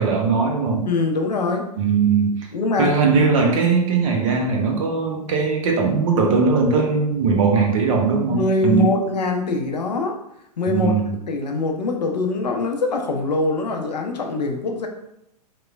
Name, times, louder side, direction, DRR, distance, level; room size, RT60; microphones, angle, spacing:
voice 1, 0.0-0.9 1.8-2.4 2.8-8.9 10.7-11.0, right 5 dB, 55° right, 2 dB, 0.6 m, -19 dB
voice 2, 0.9-1.6 2.5-3.3 8.3-10.1 10.6-11.0 11.2-14.9, left 3 dB, 80° left, 3 dB, 0.5 m, -23 dB
3.0 x 2.1 x 2.3 m, 0.81 s
figure-of-eight pair, 105°, 21 cm